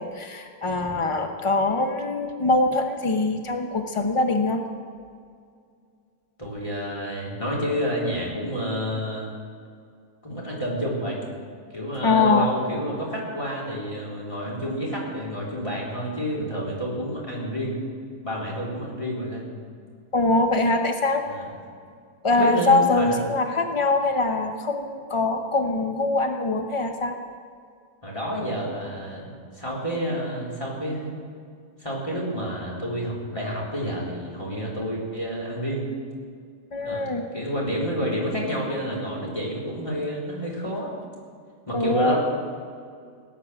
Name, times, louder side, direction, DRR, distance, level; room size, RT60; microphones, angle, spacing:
voice 1, 0.0-4.6 12.0-12.5 20.1-21.2 22.2-27.2 36.7-37.2 41.7-42.2, left 3 dB, 55° left, 5 dB, 0.3 m, -23 dB
voice 2, 6.4-9.3 10.2-11.2 11.7-17.8 18.2-19.5 21.3-21.4 22.3-23.2 28.0-29.3 29.5-31.1 31.8-35.9 36.8-37.1 37.3-40.9 41.7-42.2, equal, 15° left, -4 dB, 3.9 m, -29 dB
17.5 x 9.5 x 7.5 m, 2.2 s
omnidirectional pair, 2.0 m